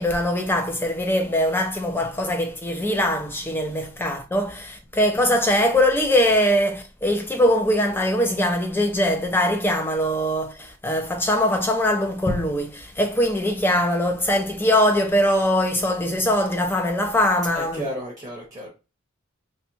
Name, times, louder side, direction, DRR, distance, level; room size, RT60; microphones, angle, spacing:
voice 1, 0.0-17.9, left 1 dB, 10° left, 0.3 m, -22 dB
voice 2, 17.5-18.7, right 1 dB, 15° right, 0.7 m, -33 dB
2.7 x 2.1 x 2.6 m
head